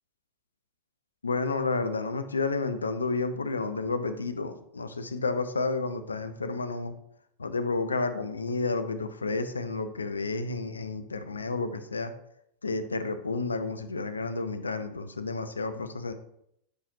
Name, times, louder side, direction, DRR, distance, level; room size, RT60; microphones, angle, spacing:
voice 1, 1.2-6.9 7.4-12.1 12.6-16.1, left 3 dB, 75° left, 10 dB, 0.5 m, -31 dB
6.6 x 5.7 x 2.6 m, 0.75 s
figure-of-eight pair, 90°, 0 cm